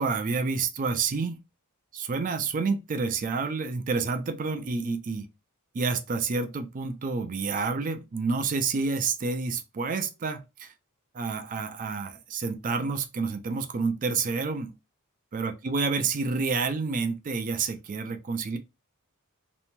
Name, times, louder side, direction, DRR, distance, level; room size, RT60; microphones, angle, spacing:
voice 1, 0.0-1.4 1.9-5.3 5.7-10.7 11.1-14.7 15.3-18.6, right 4 dB, 35° right, 0.4 m, -29 dB
2.6 x 2.2 x 2.9 m
head